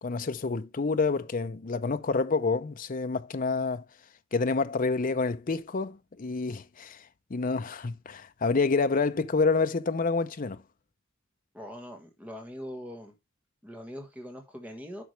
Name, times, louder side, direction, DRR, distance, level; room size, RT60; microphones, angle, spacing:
voice 1, 0.0-3.8 4.3-10.6, left 4 dB, 40° left, 0.6 m, -28 dB
voice 2, 11.5-13.1 13.6-15.0, equal, 5° right, 1.5 m, -42 dB
10.5 x 6.0 x 3.2 m
head